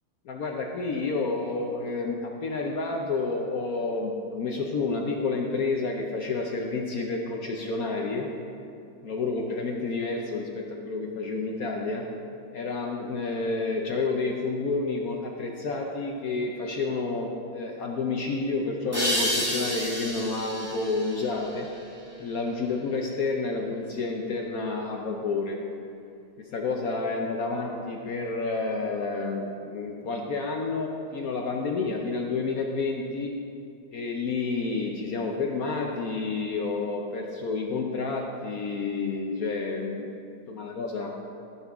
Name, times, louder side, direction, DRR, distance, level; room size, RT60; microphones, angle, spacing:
voice 1, 0.3-8.3 9.0-12.0 12.5-21.7 22.2-25.6 26.5-33.3 33.9-40.1 40.5-41.1, left 3 dB, 70° left, 1 dB, 0.8 m, -30 dB
sound 1, 18.9-22.3, equal, 5° right, 1.9 m, -31 dB
15.0 x 5.8 x 3.5 m, 2.6 s
omnidirectional pair, 2.3 m